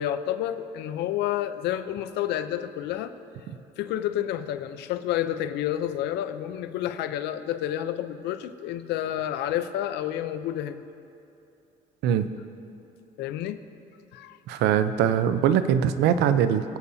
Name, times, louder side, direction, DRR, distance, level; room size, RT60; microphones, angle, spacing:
voice 1, 0.0-3.1 3.8-10.8 13.2-13.6 14.1-14.4, left 11 dB, 85° left, 11 dB, 0.6 m, -29 dB
voice 2, 14.5-16.8, right 9 dB, 85° right, 11 dB, 0.6 m, -22 dB
24.5 x 8.2 x 2.7 m, 2.7 s
cardioid pair, 110°, 17 cm